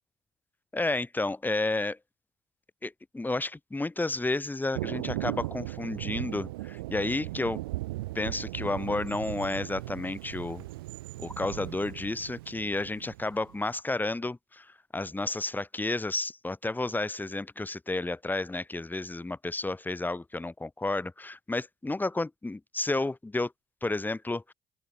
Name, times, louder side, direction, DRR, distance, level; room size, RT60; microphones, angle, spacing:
voice 1, 0.7-2.0 2.8-7.6 8.1-10.6 11.2-14.7 14.9-23.5 23.8-24.5, left 2 dB, 15° left, 1.7 m, -31 dB
Thunder, 4.7-13.7, right 19 dB, 85° right, 3.4 m, -38 dB
open air
hypercardioid pair, 55°, 12 cm